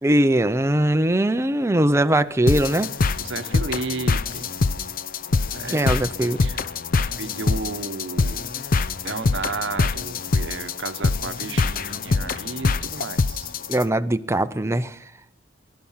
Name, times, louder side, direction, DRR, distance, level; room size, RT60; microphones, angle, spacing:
voice 1, 0.0-2.9 5.7-6.4 13.7-15.0, right 1 dB, 15° right, 0.6 m, -21 dB
sound 1, 2.5-13.8, left 4 dB, 45° left, 0.5 m, -24 dB
voice 2, 3.2-4.5 5.5-6.0 6.4-6.6 7.2-8.5 9.0-13.5, right 3 dB, 65° right, 1.0 m, -33 dB
19.5 x 11.5 x 5.7 m
head